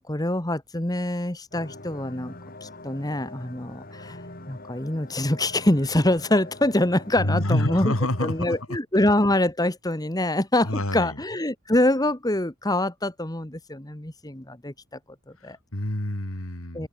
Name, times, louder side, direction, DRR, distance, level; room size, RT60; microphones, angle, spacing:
voice 1, 0.0-4.2 4.5-15.0 15.4-15.6 16.7-16.9, left 1 dB, 15° left, 1.7 m, -25 dB
sound 1, 1.5-8.6, left 2 dB, 40° left, 4.7 m, -43 dB
voice 2, 7.2-8.5 10.6-11.2 15.4-16.9, left 1 dB, 75° left, 3.3 m, -27 dB
head